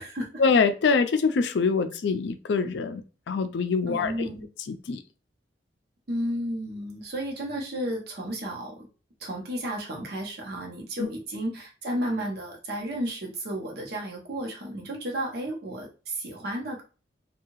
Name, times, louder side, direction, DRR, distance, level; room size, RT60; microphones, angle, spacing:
voice 1, 0.4-4.3 4.7-5.0 11.0-11.1, left 5 dB, 70° left, 9 dB, 0.4 m, -24 dB
voice 2, 3.9-4.4 6.1-8.9 9.2-16.8, right 1 dB, 60° right, 0 dB, 0.8 m, -33 dB
2.7 x 2.3 x 3.0 m, 0.34 s
head